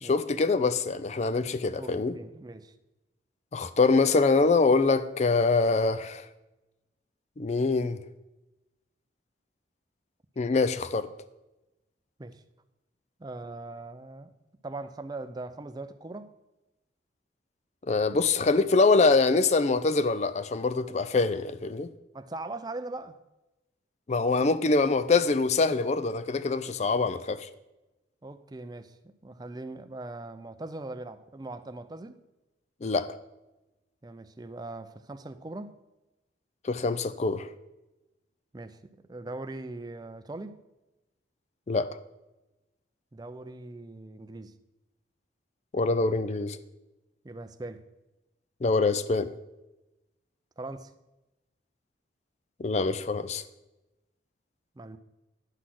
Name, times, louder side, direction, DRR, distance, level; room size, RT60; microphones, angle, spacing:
voice 1, 0.0-2.2 3.5-6.3 7.4-8.0 10.4-11.1 17.8-21.9 24.1-27.5 32.8-33.1 36.6-37.5 41.7-41.9 45.7-46.6 48.6-49.3 52.6-53.4, left 3 dB, 40° left, 0.4 m, -24 dB
voice 2, 1.8-2.7 12.2-12.4 13.2-14.3 14.6-16.3 22.1-23.2 28.2-29.0 29.2-32.2 34.0-35.8 38.5-40.6 43.1-44.5 47.2-47.8 50.6-50.9 54.8-55.0, right 2 dB, 20° right, 0.4 m, -40 dB
9.9 x 4.1 x 7.6 m
head